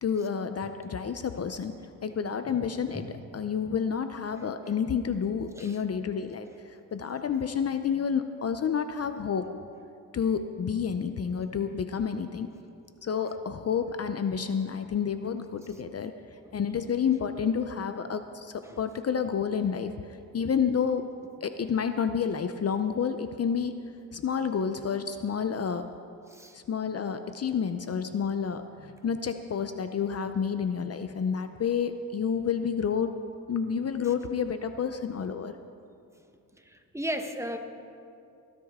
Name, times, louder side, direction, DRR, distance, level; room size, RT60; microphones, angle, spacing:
voice 1, 0.0-1.7 2.0-3.1 3.3-9.5 10.1-12.5 13.0-16.1 16.5-20.1 20.3-21.1 21.4-23.7 24.1-25.9 26.5-33.1 33.5-35.5, left 7 dB, 45° left, 9 dB, 0.6 m, -29 dB
voice 2, 2.2-2.6 2.9-3.1 5.5-5.8 16.4-16.6 18.6-18.8 26.3-26.6 36.7-37.6, equal, 10° right, 5 dB, 1.0 m, -36 dB
19.5 x 13.5 x 3.6 m, 2.5 s
cardioid pair, 95°, 35 cm